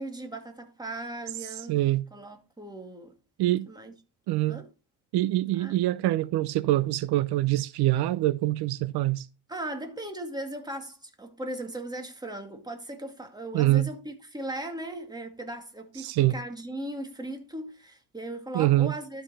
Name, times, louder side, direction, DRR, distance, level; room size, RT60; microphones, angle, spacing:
voice 1, 0.0-1.8 2.1-3.2 3.7-3.9 4.5-4.7 5.6-5.8 9.5-19.2, right 1 dB, 10° right, 2.2 m, -38 dB
voice 2, 1.7-2.0 3.4-3.7 4.3-4.6 5.1-9.3 13.5-13.9 16.0-16.4 18.5-18.9, right 16 dB, 70° right, 0.7 m, -24 dB
12.5 x 5.8 x 4.1 m
cardioid pair, 115°, 41 cm